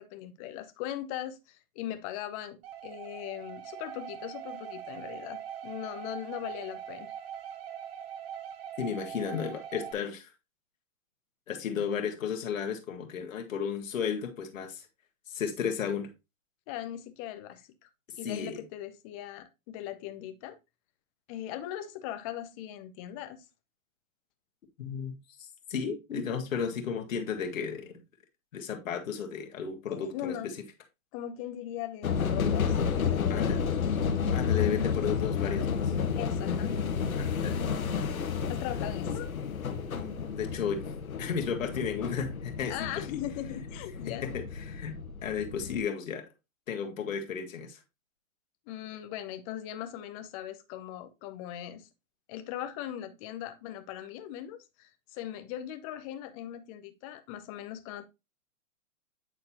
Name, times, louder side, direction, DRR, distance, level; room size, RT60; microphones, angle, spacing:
voice 1, 0.0-7.1 16.7-17.9 18.2-20.6 21.3-23.4 29.9-30.5 31.1-33.8 36.1-36.8 38.5-39.3 42.7-44.3 48.7-51.9 52.3-58.0, left 12 dB, 25° left, 0.7 m, -39 dB
sound 1, 2.6-9.9, right 9 dB, 45° right, 0.9 m, -42 dB
voice 2, 8.8-10.3 11.5-14.9 15.3-16.1 18.2-18.6 24.8-27.9 28.5-30.5 33.3-33.6 34.3-35.9 37.1-37.6 39.9-40.9 41.2-43.2 44.2-46.2 46.7-47.8, left 7 dB, 70° left, 1.7 m, -34 dB
sound 2, 32.0-45.8, left 6 dB, 90° left, 1.2 m, -31 dB
8.8 x 4.0 x 2.9 m
hypercardioid pair, 135°, 41 cm